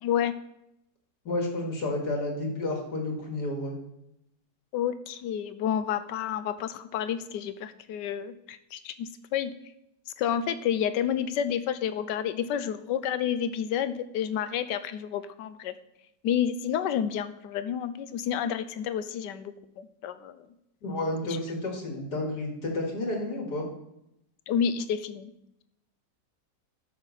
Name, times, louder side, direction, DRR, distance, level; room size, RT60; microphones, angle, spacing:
voice 1, 0.0-0.3 4.7-9.5 10.2-15.7 16.2-20.4 24.5-25.3, left 9 dB, 85° left, 12 dB, 1.3 m, -30 dB
voice 2, 1.2-3.8 20.8-23.7, left 2 dB, 65° left, 0 dB, 2.6 m, -31 dB
12.5 x 6.4 x 4.1 m, 0.82 s
omnidirectional pair, 1.9 m